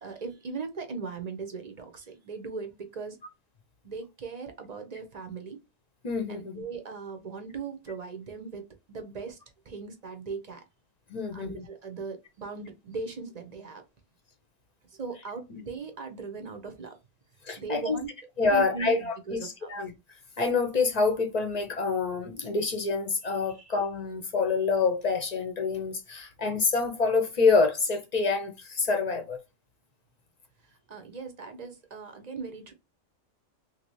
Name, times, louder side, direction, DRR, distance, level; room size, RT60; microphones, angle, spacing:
voice 1, 0.0-3.2 3.8-5.6 6.3-8.6 8.9-9.4 9.7-10.6 11.3-13.8 15.0-17.0 17.6-18.1 18.5-19.7 23.5-23.6 30.9-32.7, right 5 dB, 45° right, 0.6 m, -38 dB
voice 2, 6.0-6.6 11.1-11.7 15.5-15.6 17.4-18.0 18.4-19.9 20.4-29.4, left 4 dB, 45° left, 0.5 m, -27 dB
3.3 x 2.6 x 3.0 m
omnidirectional pair, 1.3 m